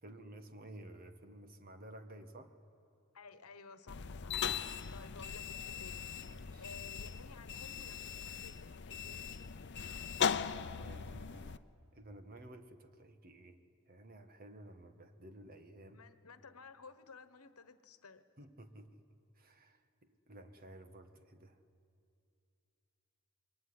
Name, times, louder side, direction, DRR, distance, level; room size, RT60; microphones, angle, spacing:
voice 1, 0.0-2.5 6.3-6.7 10.6-11.6 11.9-13.6 13.9-16.0 18.4-19.0 19.3-21.6, right 1 dB, 40° right, 8 dB, 1.6 m, -53 dB
voice 2, 3.1-6.1 6.6-9.4 15.9-18.2, left 4 dB, 75° left, 12 dB, 1.3 m, -55 dB
sound 1, 3.9-11.6, left 7 dB, 55° left, 0.7 m, -39 dB
27.5 x 22.0 x 9.8 m, 2.5 s
head